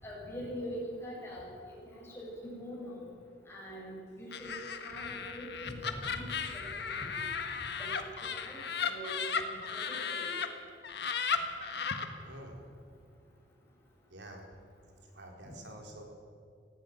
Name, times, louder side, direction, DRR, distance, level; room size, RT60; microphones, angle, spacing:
voice 1, 0.0-1.5 1.8-3.1 3.5-7.2 7.8-8.1 8.3-9.2 9.5-10.3 15.4-15.5, equal, 15° left, -5 dB, 7.8 m, -43 dB
Laughter, 4.3-10.5 10.8-12.1, left 6 dB, 65° left, 1.6 m, -35 dB
voice 2, 12.2-12.7 14.1-14.4 15.0-16.0, right 1 dB, 70° right, 1 dB, 4.3 m, -48 dB
18.5 x 15.5 x 9.6 m, 2.3 s
head